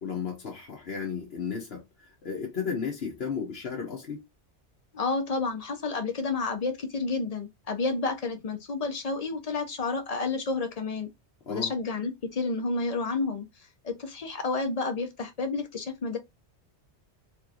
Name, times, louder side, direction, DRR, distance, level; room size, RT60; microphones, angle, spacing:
voice 1, 0.0-4.2 11.4-11.7, left 6 dB, 65° left, 1.1 m, -34 dB
voice 2, 4.9-11.1 11.5-13.5 13.8-16.2, left 3 dB, 40° left, 0.7 m, -30 dB
3.1 x 3.1 x 2.4 m
omnidirectional pair, 1.2 m